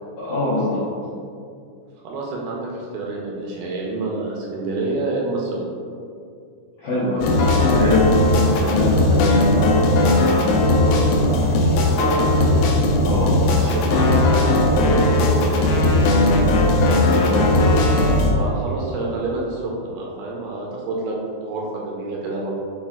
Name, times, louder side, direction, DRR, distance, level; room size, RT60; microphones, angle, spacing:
voice 1, 0.2-0.8 6.8-9.7 13.0-13.3 17.1-17.4, left 2 dB, 70° left, -11 dB, 1.6 m, -24 dB
voice 2, 2.0-5.6 10.8-12.6 13.4-16.3 18.2-22.5, right 2 dB, 80° right, -3 dB, 2.1 m, -28 dB
sound 1, 7.2-18.3, left 1 dB, 90° left, 1.7 m, -17 dB
5.6 x 2.4 x 3.5 m, 2.4 s
omnidirectional pair, 4.0 m